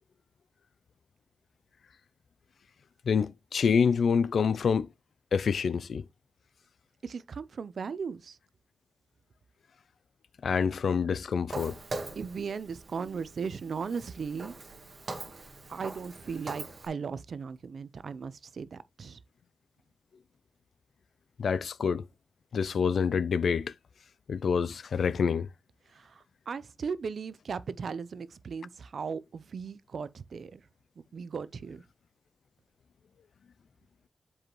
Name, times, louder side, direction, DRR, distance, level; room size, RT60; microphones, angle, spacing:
voice 1, 3.1-4.9 5.3-6.0 10.4-11.7 21.4-22.0 22.5-23.7 24.3-25.5, left 6 dB, 80° left, 0.3 m, -27 dB
voice 2, 7.0-8.4 12.2-14.5 15.7-19.2 25.9-30.6 31.1-31.8, right 5 dB, 75° right, 0.5 m, -37 dB
Walk footsteps, 11.5-16.9, right 3 dB, 55° right, 1.5 m, -42 dB
7.5 x 4.8 x 3.0 m
wide cardioid pair, 85°, 0 cm